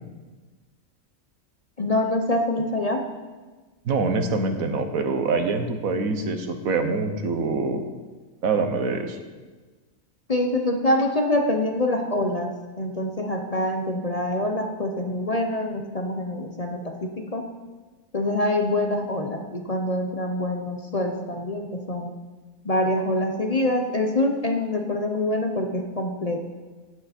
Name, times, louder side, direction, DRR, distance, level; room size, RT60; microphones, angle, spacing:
voice 1, 1.8-3.0 10.3-12.5 12.8-17.4 18.1-22.1 22.6-26.5, left 1 dB, 30° left, 3 dB, 0.8 m, -25 dB
voice 2, 3.8-7.8 8.4-9.2, right 3 dB, 80° right, 7 dB, 1.5 m, -25 dB
14.5 x 9.4 x 4.3 m, 1.3 s
omnidirectional pair, 1.4 m